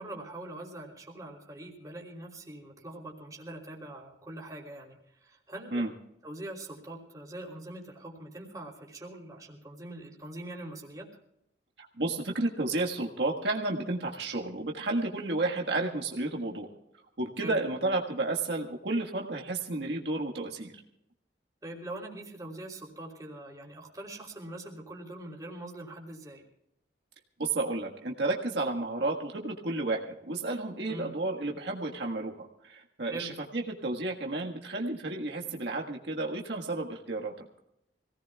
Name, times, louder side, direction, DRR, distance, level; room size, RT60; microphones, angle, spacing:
voice 1, 0.0-5.8 6.2-11.2 17.4-17.6 21.6-26.4 30.9-31.1 33.1-33.3, right 1 dB, 20° right, -2 dB, 3.2 m, -43 dB
voice 2, 11.8-16.7 17.2-20.7 27.4-37.4, right 2 dB, 75° right, 0 dB, 1.6 m, -32 dB
25.5 x 17.5 x 2.3 m, 0.81 s
head